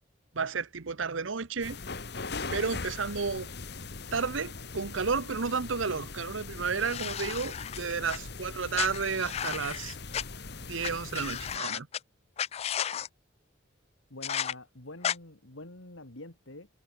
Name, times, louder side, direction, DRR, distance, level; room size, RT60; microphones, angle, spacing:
voice 1, 0.3-1.8 2.5-3.5 4.1-10.0 10.7-11.9, right 5 dB, 80° right, 0.9 m, -32 dB
sound 1, 1.6-11.6, left 4 dB, 60° left, 1.6 m, -41 dB
sound 2, 6.8-8.2 8.7-10.2 10.8-10.9 11.1-12.0 12.4-13.1 14.2-14.5 15.0-15.2, left 9 dB, 30° left, 0.3 m, -34 dB
voice 2, 14.1-16.7, left 2 dB, 85° left, 3.5 m, -46 dB
head